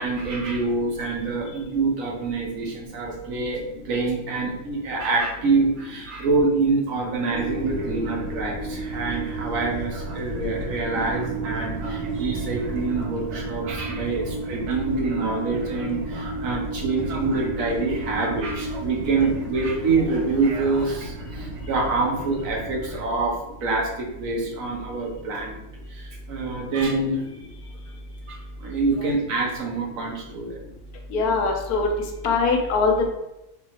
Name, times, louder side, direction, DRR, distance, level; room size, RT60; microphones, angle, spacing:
voice 1, 0.0-3.6 3.8-25.6 25.9-27.2 28.3-30.6, right 3 dB, 65° right, -1 dB, 1.2 m, -26 dB
sound 1, 7.3-23.0, right 2 dB, 85° right, 1.2 m, -32 dB
voice 2, 31.1-31.9 32.2-33.1, left 4 dB, 80° left, 2 dB, 1.2 m, -22 dB
4.9 x 3.0 x 3.0 m, 0.89 s
omnidirectional pair, 1.6 m